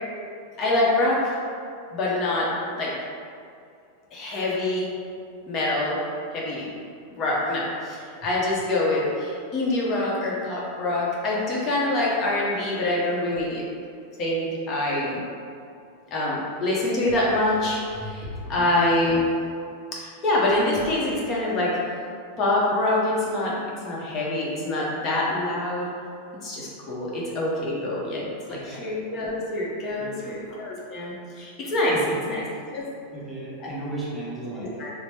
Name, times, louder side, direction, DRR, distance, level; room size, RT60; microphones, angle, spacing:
voice 1, 0.6-1.4 1.9-2.5 2.8-2.9 4.1-4.9 5.5-6.0 6.3-6.7 7.1-13.6 14.2-15.2 16.1-19.2 19.9-21.8 22.4-23.5 23.8-25.9 26.4-32.0 32.3-32.4 32.7-32.8 33.6-33.7 34.6-34.9, left 2 dB, 40° left, -5 dB, 0.7 m, -25 dB
voice 2, 28.5-28.9 30.0-30.4 31.9-32.2 32.7-32.9 33.1-34.8, right 2 dB, 5° right, -8 dB, 0.7 m, -36 dB
2.9 x 2.0 x 3.2 m, 2.4 s
hypercardioid pair, 120°, 0 cm